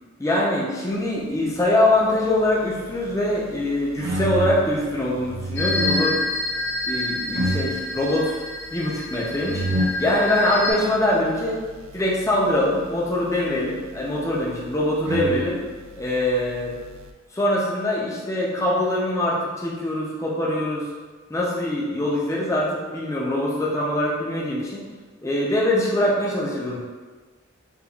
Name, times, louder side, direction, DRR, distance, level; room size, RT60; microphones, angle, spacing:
voice 1, 0.2-6.2 6.9-8.4 8.7-9.6 10.0-11.6 11.9-15.6 16.0-16.7 17.3-20.9 21.3-24.8 25.2-26.8, left 1 dB, 15° left, -4 dB, 0.5 m, -23 dB
sound 1, 1.7-17.1, right 1 dB, 75° right, 0.3 m, -32 dB
sound 2, 5.6-10.7, left 2 dB, 70° left, 0.6 m, -28 dB
5.2 x 2.3 x 2.3 m, 1.4 s
head